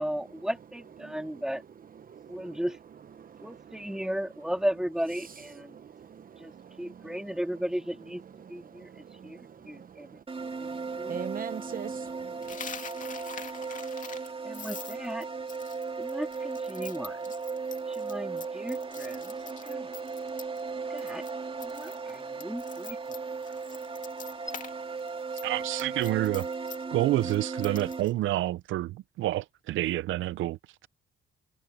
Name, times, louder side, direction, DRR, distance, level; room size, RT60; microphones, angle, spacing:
voice 1, 0.0-1.6 2.3-2.8 3.4-5.8 6.4-8.2 8.5-10.2 10.6-11.2 14.4-15.3 16.0-17.3 17.9-19.3 19.6-19.9 20.9-21.2 21.6-23.0, equal, 5° right, 2.5 m, -35 dB
voice 2, 1.0-1.4 2.1-2.6 3.2-4.0 5.5-7.4 8.4-12.6, right 7 dB, 45° right, 0.9 m, -44 dB
sound 1, 10.3-28.0, right 4 dB, 25° right, 2.8 m, -36 dB
Coin (dropping), 12.4-20.7 21.0-21.3 21.6-24.7 25.0-28.1, left 6 dB, 40° left, 2.5 m, -45 dB
voice 3, 25.4-26.5 26.9-30.6, right 15 dB, 80° right, 0.6 m, -28 dB
cardioid pair, 90°, 20 cm